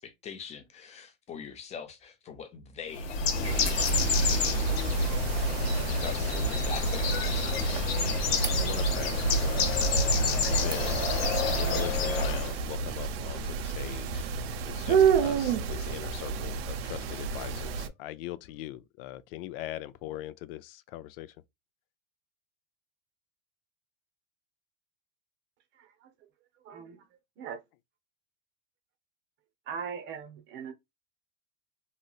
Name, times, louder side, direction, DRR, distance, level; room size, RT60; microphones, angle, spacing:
voice 1, 0.0-4.8 6.0-7.5, left 6 dB, 20° left, 0.6 m, -44 dB
Bird, 2.9-12.6, left 2 dB, 90° left, 0.9 m, -27 dB
sound 1, 3.4-17.9, right 6 dB, 90° right, 0.6 m, -31 dB
sound 2, 5.3-11.8, right 6 dB, 15° right, 0.3 m, -43 dB
voice 2, 8.6-11.1 11.6-14.3 14.6-21.3, left 14 dB, 65° left, 0.4 m, -41 dB
voice 3, 25.7-26.1 26.6-27.0 27.4-27.6 29.7-30.7, right 6 dB, 40° right, 0.7 m, -40 dB
3.0 x 2.8 x 2.2 m
supercardioid pair, 140°, 30 cm